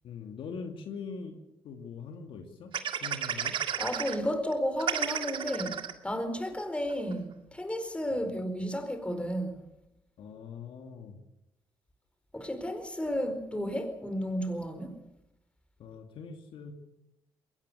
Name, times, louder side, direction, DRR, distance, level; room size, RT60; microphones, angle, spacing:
voice 1, 0.0-2.7 3.0-3.6 8.1-8.4 10.2-11.2 15.8-16.7, left 5 dB, 70° left, 2.6 m, -42 dB
sound 1, 2.7-4.2 4.5-4.6 4.8-5.9 6.5-6.6 6.9-7.1, right 9 dB, 65° right, 2.0 m, -32 dB
voice 2, 3.8-9.6 12.3-15.0, equal, 10° left, 4.6 m, -33 dB
21.5 x 18.0 x 6.9 m
supercardioid pair, 60°, 9 cm